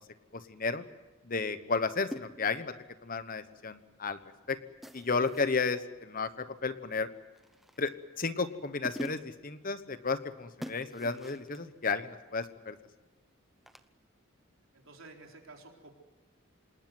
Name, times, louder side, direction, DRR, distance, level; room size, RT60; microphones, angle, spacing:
voice 1, 0.3-0.8 1.3-2.7 3.0-4.2 4.5-4.6 4.9-7.1 7.8-12.8, left 4 dB, 40° left, 12 dB, 1.1 m, -33 dB
sound 1, 2.1-2.7 4.8-5.6 7.4-8.0 8.5-8.6 8.8-9.4 10.6-11.6 13.7-13.9, equal, ahead, 0.8 m, -44 dB
voice 2, 14.7-15.9, right 3 dB, 70° right, 1 dB, 4.2 m, -52 dB
27.0 x 20.0 x 7.9 m, 1.1 s
head